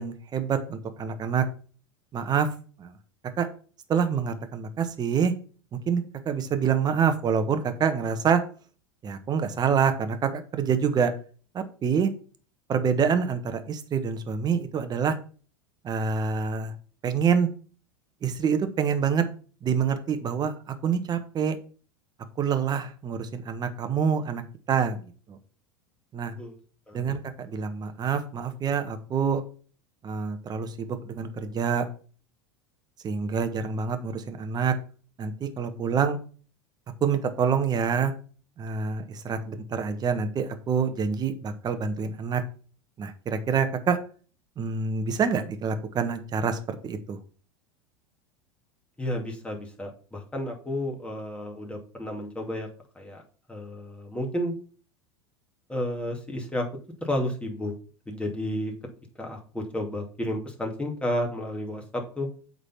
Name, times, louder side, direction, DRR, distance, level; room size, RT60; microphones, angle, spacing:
voice 1, 0.0-1.4 2.1-2.5 2.8-2.9 3.4-3.5 3.9-5.3 5.9-8.4 9.0-11.1 11.5-12.1 12.7-15.2 15.8-16.7 17.0-17.5 18.2-19.2 19.6-20.5 20.8-21.6 22.4-24.4 24.7-25.0 25.3-25.4 26.1-26.3 26.9-29.4 30.0-31.9 33.0-34.7 35.2-36.2 37.0-38.1 38.6-42.4 43.0-44.0 44.6-47.2, right 6 dB, 30° right, 8 dB, 1.3 m, -26 dB
voice 2, 49.0-52.7 53.0-53.2 53.5-54.5 55.7-56.7 57.0-57.7 58.1-58.7 59.2-62.3, left 1 dB, 10° left, 0 dB, 2.4 m, -31 dB
8.1 x 4.0 x 5.7 m, 0.40 s
hypercardioid pair, 85°, 13 cm